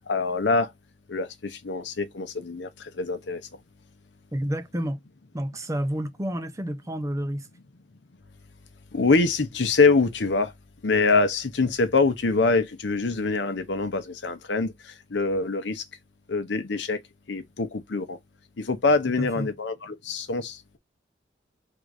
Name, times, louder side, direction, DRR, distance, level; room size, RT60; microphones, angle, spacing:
voice 1, 0.1-0.7 1.1-2.7 3.0-3.4 8.9-10.5 10.8-15.8 16.3-17.0 17.3-18.2 18.6-20.8, left 3 dB, 80° left, 0.7 m, -24 dB
voice 2, 4.3-5.0 5.3-7.5 19.2-19.5, equal, 20° right, 0.5 m, -30 dB
3.8 x 2.6 x 4.6 m
head